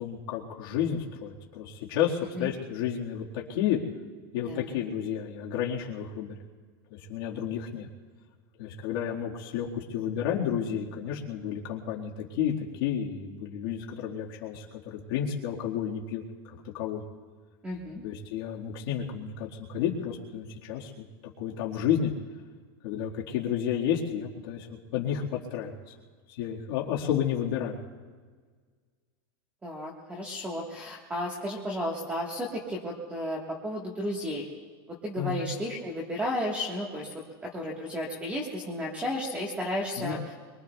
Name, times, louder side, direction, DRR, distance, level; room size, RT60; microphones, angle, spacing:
voice 1, 0.0-3.8 4.3-6.3 6.9-7.9 8.6-16.2 16.7-17.0 18.0-20.9 21.4-22.1 22.8-25.7 26.3-27.8 35.2-35.4 40.0-40.1, left 9 dB, 65° left, -3 dB, 1.7 m, -31 dB
voice 2, 17.6-18.0 29.6-34.5 34.9-37.1 37.4-40.2, left 1 dB, 10° right, -2 dB, 1.4 m, -33 dB
25.0 x 23.0 x 2.3 m, 1.5 s
supercardioid pair, 170°, 13 cm